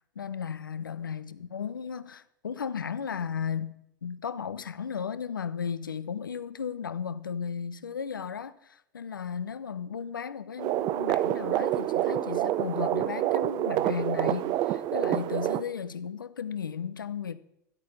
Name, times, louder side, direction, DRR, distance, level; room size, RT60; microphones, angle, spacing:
voice 1, 0.2-3.7 4.0-17.4, left 7 dB, 80° left, 0.6 m, -35 dB
sound 1, 10.6-15.6, right 13 dB, 40° right, 0.5 m, -27 dB
12.0 x 8.2 x 5.3 m
figure-of-eight pair, 85°, 11 cm